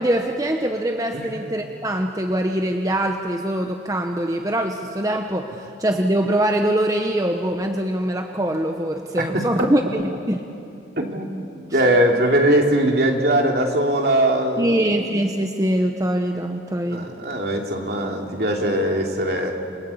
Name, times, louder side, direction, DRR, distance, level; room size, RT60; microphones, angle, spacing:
voice 1, 0.0-10.5 11.7-11.8 14.6-17.1, right 1 dB, 20° right, 3 dB, 1.1 m, -23 dB
voice 2, 11.0-11.3 11.7-14.8 16.9-19.5, right 1 dB, 60° right, 1 dB, 3.1 m, -20 dB
28.5 x 24.0 x 8.5 m, 2.7 s
head